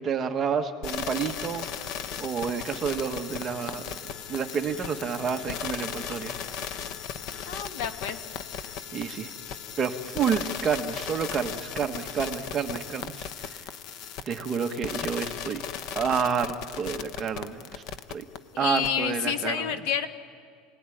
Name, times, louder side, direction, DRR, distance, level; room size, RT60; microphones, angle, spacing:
voice 1, 0.0-1.6 2.2-3.9 4.3-6.8 8.9-9.3 9.8-13.3 14.3-15.6 15.9-17.8 18.1-18.2 18.6-19.7, right 6 dB, 20° right, 5 dB, 1.3 m, -29 dB
sound 1, 0.8-18.4 18.8-18.9, left 8 dB, 45° left, 1.0 m, -37 dB
voice 2, 7.5-8.2 18.6-20.1, left 8 dB, 65° left, 8 dB, 1.8 m, -29 dB
29.0 x 19.5 x 10.0 m, 2.1 s
cardioid pair, 175°, 0 cm